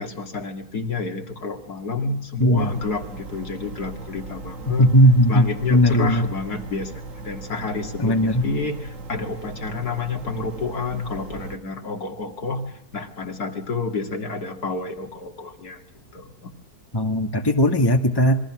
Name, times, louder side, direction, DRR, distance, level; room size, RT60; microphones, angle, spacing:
voice 1, 0.0-4.9 5.3-6.9 7.2-15.8 16.1-16.5, left 4 dB, 75° left, 4 dB, 2.8 m, -29 dB
voice 2, 2.4-2.7 4.7-6.3 8.0-8.4 16.9-18.4, equal, 15° left, 5 dB, 1.9 m, -18 dB
sound 1, 2.6-11.6, right 3 dB, 55° right, 2.0 m, -38 dB
27.0 x 22.0 x 6.1 m, 0.74 s
omnidirectional pair, 1.7 m